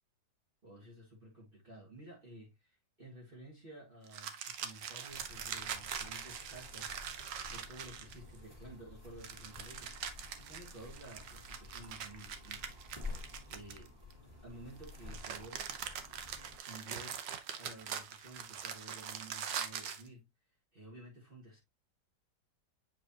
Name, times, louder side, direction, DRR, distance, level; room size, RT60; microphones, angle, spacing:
voice 1, 0.6-6.9 7.5-12.7 13.5-13.9 14.4-15.6 16.6-17.2 17.6-20.3 20.7-21.6, right 1 dB, 30° right, 2.0 m, -53 dB
sound 1, 4.1-8.4 9.2-14.1 14.8-20.1, right 8 dB, 80° right, 1.6 m, -43 dB
sound 2, 5.1-16.6, left 3 dB, 15° right, 2.5 m, -51 dB
7.8 x 4.9 x 2.8 m
omnidirectional pair, 1.9 m